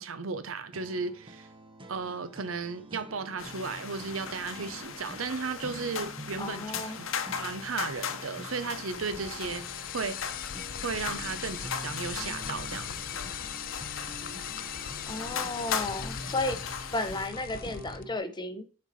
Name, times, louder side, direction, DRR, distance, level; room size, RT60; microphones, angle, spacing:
voice 1, 0.0-1.5 1.9-7.1 7.4-9.6 9.9-10.2 10.8-13.0, right 4 dB, 85° right, 0.7 m, -35 dB
sound 1, 0.7-18.2, right 1 dB, 25° right, 0.8 m, -46 dB
sound 2, 3.4-17.3, left 7 dB, 70° left, 0.8 m, -38 dB
voice 2, 6.4-7.0 15.1-16.6 16.9-18.6, left 2 dB, 20° left, 0.7 m, -33 dB
sound 3, 8.9-18.0, left 9 dB, 45° left, 0.4 m, -40 dB
7.2 x 4.3 x 4.2 m
head